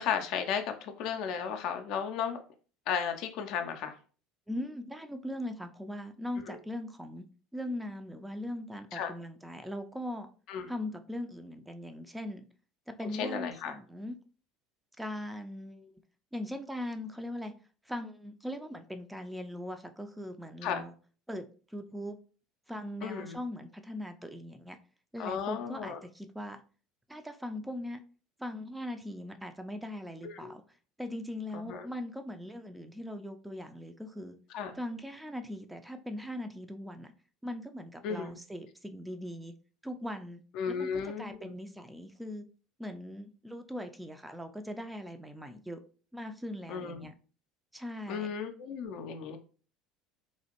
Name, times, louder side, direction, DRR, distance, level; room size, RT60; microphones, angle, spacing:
voice 1, 0.0-2.4 2.9-3.9 6.5-6.6 8.9-9.1 10.5-10.7 13.1-13.7 20.6-20.8 23.0-23.4 25.2-26.0 30.2-30.5 31.5-31.9 34.5-34.7 38.0-38.4 40.5-41.6 46.7-47.1 48.1-49.4, left 7 dB, 60° left, 0.4 m, -34 dB
voice 2, 4.5-7.2 7.5-10.3 10.7-12.4 12.9-14.2 15.0-16.0 16.3-17.5 17.9-20.9 21.3-21.4 21.7-22.2 22.7-24.8 25.1-26.6 27.1-28.0 28.4-30.6 31.0-34.4 34.8-37.1 37.4-39.5 39.8-42.5 42.8-45.8 46.1-47.1 47.7-48.3, left 1 dB, 5° right, 0.4 m, -40 dB
3.1 x 2.4 x 2.8 m
figure-of-eight pair, 65°, 0 cm